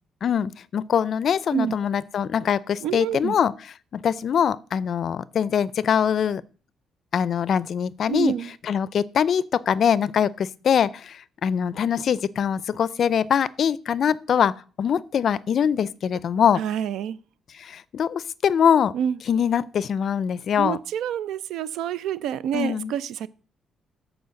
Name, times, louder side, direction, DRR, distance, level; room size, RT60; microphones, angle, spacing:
voice 1, 0.2-3.5 3.9-6.4 7.1-8.3 8.7-16.6 17.6-18.9 19.3-20.8 22.5-22.9, left 8 dB, 60° left, 0.4 m, -23 dB
voice 2, 2.8-3.3 8.1-8.5 16.6-17.2 18.9-19.2 20.6-23.3, right 9 dB, 85° right, 0.4 m, -27 dB
8.0 x 4.4 x 6.4 m
cardioid pair, 90°, 0 cm